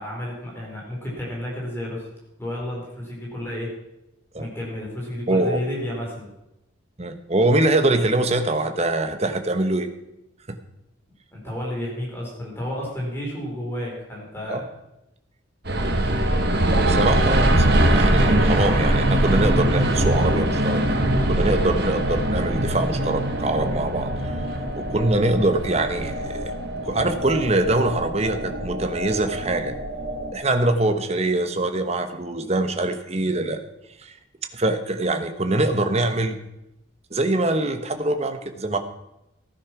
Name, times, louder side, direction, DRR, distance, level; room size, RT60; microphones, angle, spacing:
voice 1, 0.0-2.1 2.4-3.7 4.4-6.3 11.3-14.6 30.7-31.0, left 1 dB, 10° left, -3 dB, 4.3 m, -31 dB
voice 2, 5.3-5.6 7.0-9.9 10.5-10.6 14.5-14.6 16.7-21.0 21.3-24.4 24.8-26.4 26.8-29.7 30.3-33.6 34.0-34.2 34.5-36.4 37.1-38.8, right 2 dB, 30° right, 7 dB, 1.1 m, -23 dB
sound 1, 15.7-30.3, right 1 dB, 50° right, 1.6 m, -22 dB
15.0 x 9.8 x 5.9 m, 0.89 s
head